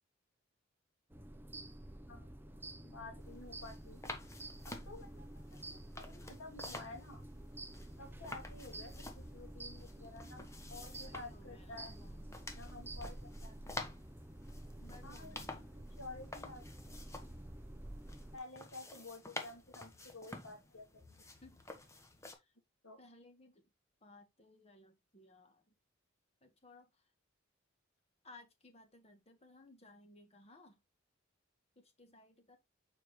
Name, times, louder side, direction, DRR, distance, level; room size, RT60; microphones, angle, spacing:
sound 1, 1.1-18.4, right 1 dB, 10° right, 0.6 m, -50 dB
voice 1, 2.0-4.0 4.7-5.4 5.7-7.2 8.0-11.9 12.5-13.8 15.0-16.6 18.3-21.2 22.8-23.0, left 2 dB, 85° left, 2.4 m, -52 dB
sound 2, 3.2-22.3, left 2 dB, 15° left, 1.1 m, -51 dB
voice 2, 11.0-12.3 14.8-15.7 21.4-21.6 22.2-22.5 23.0-23.6 24.0-25.7 26.4-27.1 28.2-30.8 31.7-32.6, left 2 dB, 30° left, 1.6 m, -60 dB
7.0 x 4.8 x 3.2 m
head